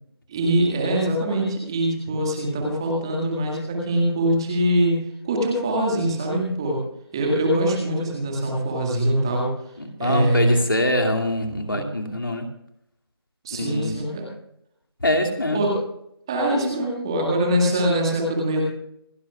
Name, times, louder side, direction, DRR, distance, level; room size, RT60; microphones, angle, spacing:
voice 1, 0.3-5.0 5.2-6.8 7.1-9.5 10.0-10.6 11.7-11.9 13.4-14.3 15.5-15.8 16.3-18.6, right 1 dB, 10° right, -1 dB, 1.9 m, -23 dB
voice 2, 9.8-12.5 13.5-13.9 15.0-15.6, left 1 dB, 55° left, 3 dB, 2.5 m, -24 dB
27.0 x 11.5 x 2.3 m, 0.77 s
figure-of-eight pair, 165°, 14 cm